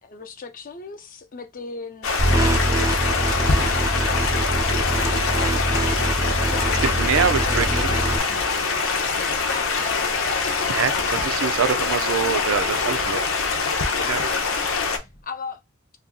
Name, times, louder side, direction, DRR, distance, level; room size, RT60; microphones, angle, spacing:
voice 1, 0.0-4.8 5.3-5.9 6.4-8.0 9.5-10.5 10.9-11.2 12.2-14.8 15.2-15.6, left 4 dB, 45° left, 0.5 m, -37 dB
Stream, 2.0-15.0, left 4 dB, 85° left, 0.7 m, -24 dB
sound 1, 2.2-8.2, right 1 dB, 15° right, 0.4 m, -24 dB
sound 2, 5.7-15.2, equal, 25° left, 0.9 m, -45 dB
voice 2, 6.7-8.0 10.7-13.2 14.1-14.2, right 7 dB, 80° right, 0.4 m, -25 dB
2.6 x 2.3 x 3.6 m
head